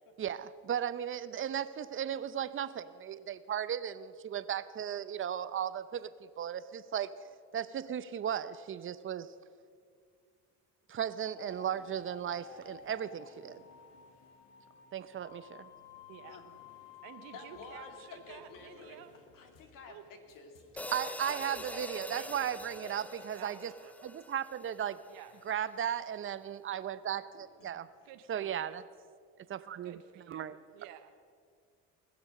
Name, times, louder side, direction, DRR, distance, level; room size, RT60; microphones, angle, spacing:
voice 1, 0.2-6.1 6.4-7.1 7.5-9.3 10.9-13.6 14.9-15.7 20.9-23.7 24.0-25.0 25.5-27.9 28.3-28.8 29.5-30.0 30.3-30.6, right 9 dB, 35° right, 14 dB, 0.6 m, -36 dB
sound 1, 11.4-23.3, left 9 dB, 85° left, 1.5 m, -56 dB
voice 2, 16.1-16.4 17.0-19.2 19.9-20.0 21.3-22.9 23.3-23.9 25.1-25.4 28.0-28.8 29.8-31.2, right 11 dB, 70° right, 8 dB, 0.8 m, -52 dB
voice 3, 17.3-19.1 19.3-21.2 21.5-21.6 25.2-25.3 27.3-27.7, left 3 dB, 65° left, 4 dB, 2.3 m, -51 dB
sound 2, 20.8-25.1, left 1 dB, 5° left, 0.3 m, -44 dB
20.0 x 7.0 x 6.4 m, 2.1 s
supercardioid pair, 90°, 35 cm